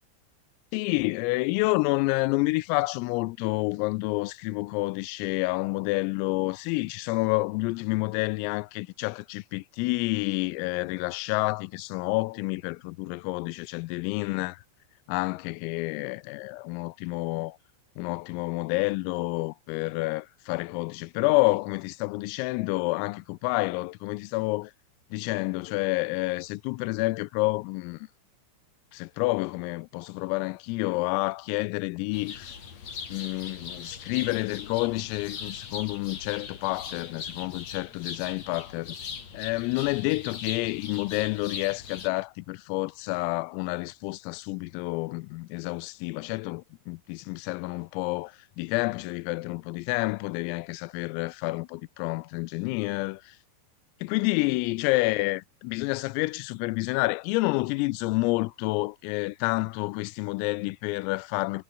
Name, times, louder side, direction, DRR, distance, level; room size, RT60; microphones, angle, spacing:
voice 1, 0.7-14.6 15.1-17.6 18.0-24.7 25.1-28.1 28.9-32.6 33.1-39.0 39.3-53.4 54.0-61.6, left 23 dB, 90° left, 3.4 m, -29 dB
sound 1, 32.1-42.1, left 6 dB, 40° left, 3.5 m, -40 dB
omnidirectional pair, 5.9 m